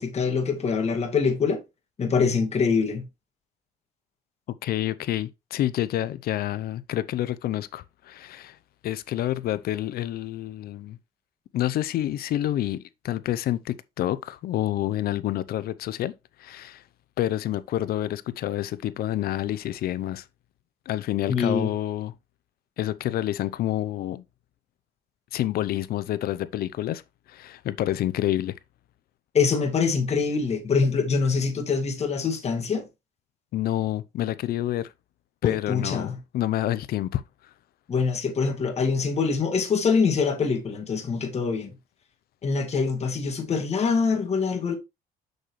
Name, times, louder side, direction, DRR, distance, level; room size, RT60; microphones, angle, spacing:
voice 1, 0.0-1.6 2.0-3.1 21.3-21.7 29.3-32.9 35.4-36.2 37.9-41.8 42.4-44.8, left 5 dB, 40° left, 2.1 m, -24 dB
voice 2, 4.5-8.6 8.8-11.0 11.5-16.1 16.4-16.8 17.2-20.2 20.9-22.1 22.8-24.2 25.3-27.0 27.3-28.5 33.5-34.9 35.4-37.2, left 13 dB, 65° left, 0.6 m, -28 dB
6.6 x 6.4 x 3.2 m
cardioid pair, 110°, 17 cm